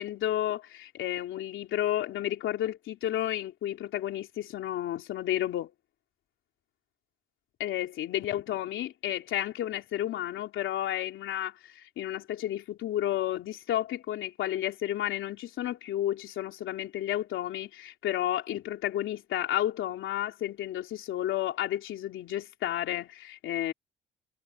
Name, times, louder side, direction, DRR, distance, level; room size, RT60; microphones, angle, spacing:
voice 1, 0.0-5.7 7.6-23.7, left 12 dB, 80° left, 3.3 m, -32 dB
cardioid pair, 90°, 20 cm